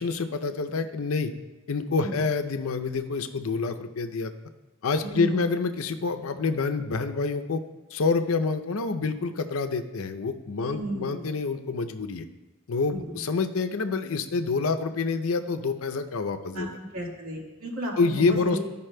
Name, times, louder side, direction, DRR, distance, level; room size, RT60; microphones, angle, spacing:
voice 1, 0.0-1.3 1.7-4.3 4.8-7.6 7.9-12.2 12.7-16.7 18.0-18.6, left 4 dB, 90° left, 8 dB, 0.6 m, -27 dB
voice 2, 5.0-5.5 10.6-11.3 12.9-13.3 16.4-16.7 16.9-18.6, equal, 85° right, -3 dB, 1.8 m, -34 dB
14.5 x 5.5 x 2.2 m, 1.1 s
head